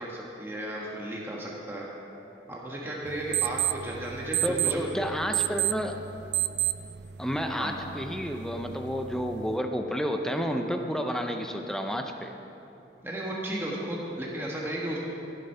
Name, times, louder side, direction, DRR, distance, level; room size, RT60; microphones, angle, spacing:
voice 1, 0.0-1.9 2.5-4.8 7.6-7.7 13.0-15.0, right 1 dB, 15° right, -4 dB, 1.3 m, -34 dB
sound 1, 3.1-9.6, right 13 dB, 70° right, 0.4 m, -32 dB
voice 2, 4.4-6.0 7.2-12.3, equal, 5° left, 4 dB, 0.6 m, -30 dB
13.5 x 7.8 x 5.6 m, 2.9 s
head